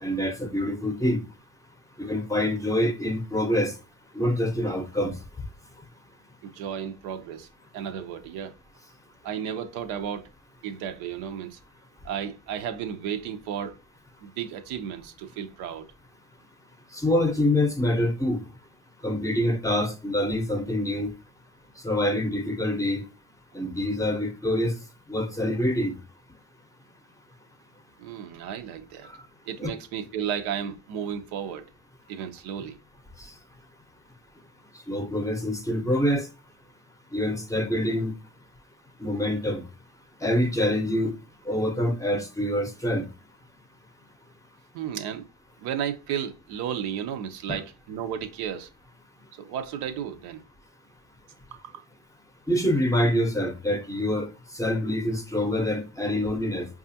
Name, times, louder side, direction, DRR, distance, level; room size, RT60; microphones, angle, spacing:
voice 1, 0.0-1.2 2.0-3.7 4.1-5.2 16.9-18.4 19.0-21.1 21.8-23.1 23.5-24.7 25.1-26.0 29.6-29.7 34.9-36.3 37.1-38.1 39.0-39.6 40.2-41.1 41.5-43.0 47.5-47.6 52.5-54.3 54.5-56.7, left 1 dB, 10° left, 0.6 m, -25 dB
voice 2, 6.4-7.5 7.7-8.5 9.2-10.3 10.6-11.6 12.0-13.8 14.2-15.9 28.0-29.1 29.5-31.7 32.1-32.8 44.7-45.3 45.6-48.7 49.3-50.4 51.5-51.8, right 8 dB, 75° right, 0.6 m, -33 dB
4.8 x 2.4 x 2.6 m
supercardioid pair, 85°, 39 cm